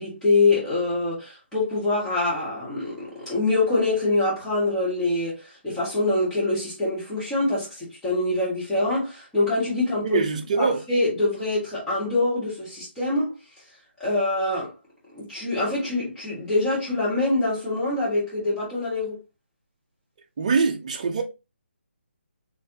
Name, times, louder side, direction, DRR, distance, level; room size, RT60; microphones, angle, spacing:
voice 1, 0.0-10.2 10.6-13.3 14.0-14.7 15.1-19.2, left 2 dB, 5° left, 1.5 m, -24 dB
voice 2, 10.0-10.8 20.4-21.2, right 5 dB, 35° right, 0.7 m, -23 dB
4.3 x 3.1 x 2.8 m
hypercardioid pair, 170°, 7 cm